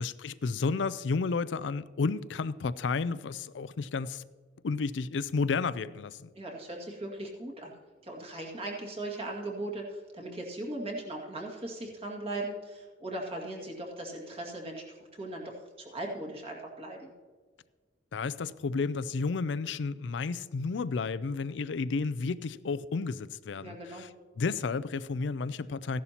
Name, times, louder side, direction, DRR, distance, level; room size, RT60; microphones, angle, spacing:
voice 1, 0.0-4.2 4.6-6.3 18.1-24.1 24.4-26.0, left 4 dB, 80° left, 0.4 m, -32 dB
voice 2, 6.4-7.7 8.0-17.1 23.6-24.1, right 1 dB, 35° right, 2.0 m, -38 dB
15.0 x 11.0 x 2.9 m
head